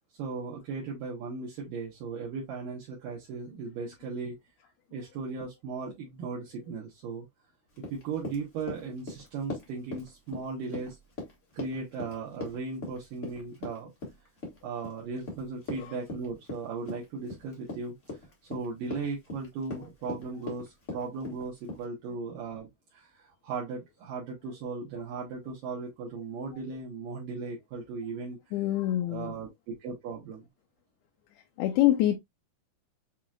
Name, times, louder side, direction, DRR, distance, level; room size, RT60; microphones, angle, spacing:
voice 1, 0.2-4.4 4.9-7.3 7.8-11.0 11.5-13.9 14.6-18.2 18.5-28.4 29.1-30.4, right 4 dB, 70° right, 2.6 m, -37 dB
Run, 7.7-21.8, left 2 dB, 60° left, 0.7 m, -41 dB
voice 2, 28.5-29.4 31.6-32.2, left 14 dB, 85° left, 2.6 m, -25 dB
7.5 x 2.9 x 2.4 m
omnidirectional pair, 4.5 m